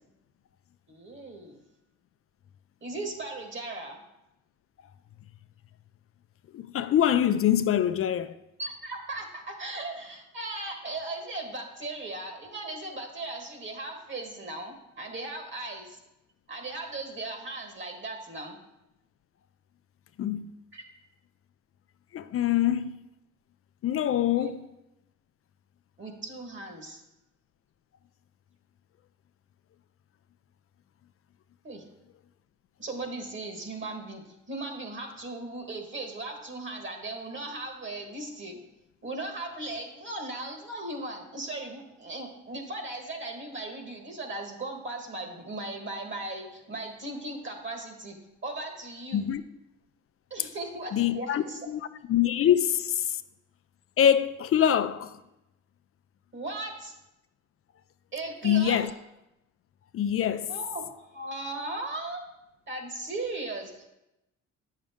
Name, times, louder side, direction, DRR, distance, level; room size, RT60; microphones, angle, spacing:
voice 1, 0.9-1.6 2.8-4.0 8.6-16.0 16.5-18.6 20.7-20.8 24.4-24.5 26.0-27.0 31.6-31.8 32.8-38.6 39.0-48.1 48.4-49.3 50.3-51.6 56.3-56.9 58.1-58.8 60.5-62.2 62.7-63.9, right 2 dB, 40° right, 1.6 m, -37 dB
voice 2, 6.5-8.3 20.2-20.5 22.1-23.0 23.8-24.6 49.1-49.4 50.9-51.8 52.1-53.2 54.0-55.2 58.4-58.9 59.9-60.5, left 10 dB, 50° left, 0.4 m, -24 dB
8.6 x 6.4 x 3.6 m
cardioid pair, 90°, 30 cm